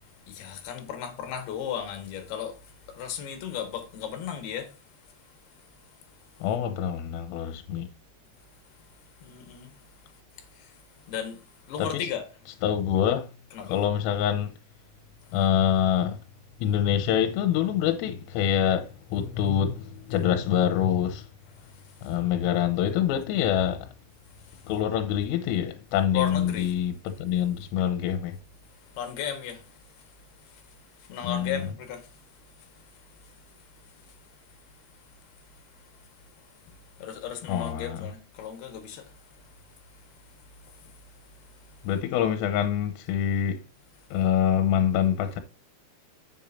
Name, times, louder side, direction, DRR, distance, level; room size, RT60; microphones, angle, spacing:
voice 1, 0.3-4.8 6.4-6.5 9.2-9.7 10.4-10.8 11.1-12.3 13.5-13.8 21.8-22.1 24.4-24.6 26.1-26.7 28.8-29.8 30.4-30.6 31.0-32.2 32.8-32.9 33.2-33.3 33.8-34.1 36.7-39.2 40.6-41.0, left 9 dB, 65° left, 2.9 m, -36 dB
voice 2, 6.4-7.9 11.8-12.1 12.6-13.3 13.6-14.5 15.3-16.2 16.6-21.3 22.0-23.9 24.7-28.4 31.2-31.6 37.5-38.1 41.9-43.6 44.1-45.4, left 9 dB, 90° left, 3.5 m, -25 dB
10.5 x 7.8 x 2.7 m
omnidirectional pair, 6.0 m